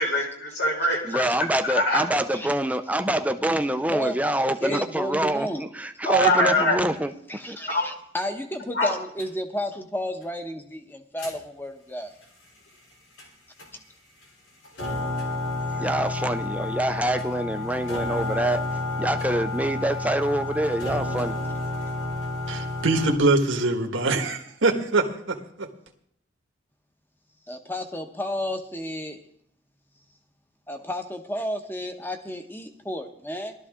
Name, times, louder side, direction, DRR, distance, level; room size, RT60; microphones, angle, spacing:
voice 1, 0.0-1.2 1.6-2.0 6.0-6.8 7.7-7.9 8.7-8.9, equal, 60° left, 0 dB, 4.0 m, -22 dB
voice 2, 1.1-7.1 7.5-7.6 15.8-18.6 19.0-21.4, right 1 dB, 10° right, 8 dB, 0.6 m, -26 dB
voice 3, 4.6-5.6 7.3-12.1 27.5-29.2 30.7-33.5, left 1 dB, 10° left, 6 dB, 1.1 m, -32 dB
sound 1, 9.2-9.3 11.2-11.3 13.2-13.3 13.6-13.7 14.2-14.3 14.6-23.1, left 2 dB, 80° left, 3.6 m, -30 dB
voice 4, 22.5-25.7, right 2 dB, 85° right, 3 dB, 1.5 m, -23 dB
16.5 x 12.5 x 3.7 m, 0.68 s
head